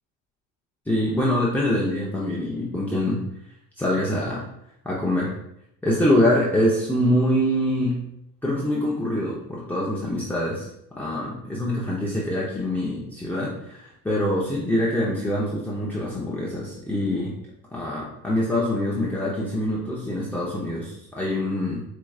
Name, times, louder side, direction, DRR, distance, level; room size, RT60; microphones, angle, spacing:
voice 1, 0.9-3.2 3.8-4.4 4.8-5.3 5.8-8.0 8.4-10.7 10.9-17.3 17.7-21.8, left 1 dB, 5° left, -6 dB, 0.8 m, -24 dB
4.8 x 3.0 x 2.4 m, 0.77 s
cardioid pair, 100°, 37 cm